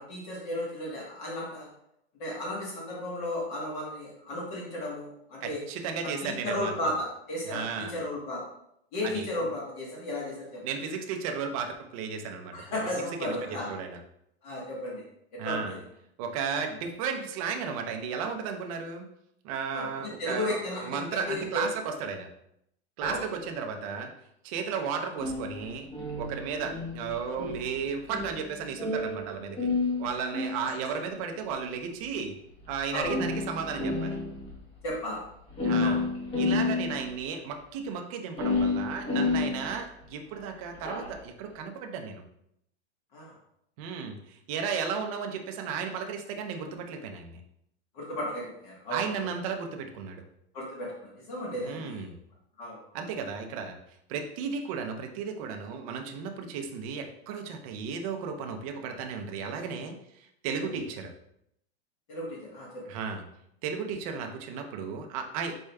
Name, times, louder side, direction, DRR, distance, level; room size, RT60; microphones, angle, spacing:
voice 1, 0.0-1.7 2.2-5.6 6.2-8.4 8.9-10.6 12.5-13.7 14.4-15.0 15.3-15.8 19.7-21.7 23.1-23.2 32.9-33.2 34.8-35.2 35.8-36.0 43.1-43.3 47.9-49.3 50.5-52.0 52.6-52.8 62.1-62.8, left 1 dB, 45° left, -4 dB, 1.2 m, -34 dB
voice 2, 5.4-6.7 7.5-7.9 9.0-9.5 10.6-12.9 13.2-14.0 15.4-15.8 16.2-19.1 19.4-22.3 23.0-24.1 24.4-25.9 26.2-29.7 30.0-32.3 32.7-34.2 35.6-36.0 36.4-42.2 43.8-47.4 48.9-50.2 51.6-52.1 52.9-53.8 54.1-61.1 62.9-63.2 63.6-65.6, right 6 dB, 35° right, 4 dB, 0.5 m, -34 dB
sound 1, 23.0-23.3 25.2-29.3 29.6-31.1 32.0-32.1 32.6-32.7 33.0-34.5 34.8-34.9 35.1-35.2 35.5-37.2 38.4-40.1 40.7-41.1, left 3 dB, 15° left, 1.0 m, -30 dB
4.8 x 4.3 x 2.2 m, 0.75 s
supercardioid pair, 160°, 33 cm